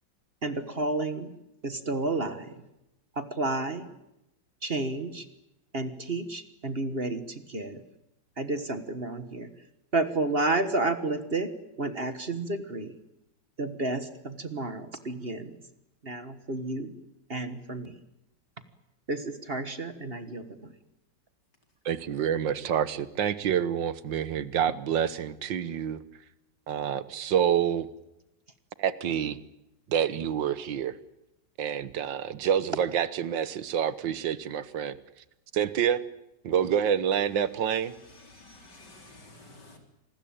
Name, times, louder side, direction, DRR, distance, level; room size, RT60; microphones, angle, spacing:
voice 1, 0.4-1.3 1.6-2.6 3.2-3.9 4.6-5.3 5.7-7.8 8.4-9.5 9.9-11.5 11.8-12.9 13.6-15.5 16.0-16.9 17.3-17.9 19.1-20.7, right 2 dB, 35° right, 11 dB, 1.6 m, -31 dB
voice 2, 21.9-26.0 26.7-27.9 28.8-29.4 29.9-30.9 31.6-35.0 35.5-36.0 36.4-37.9, right 9 dB, 90° right, 16 dB, 1.9 m, -27 dB
voice 3, 37.5-39.8, left 2 dB, 70° left, 4 dB, 4.8 m, -52 dB
27.0 x 20.5 x 8.8 m, 0.89 s
omnidirectional pair, 1.9 m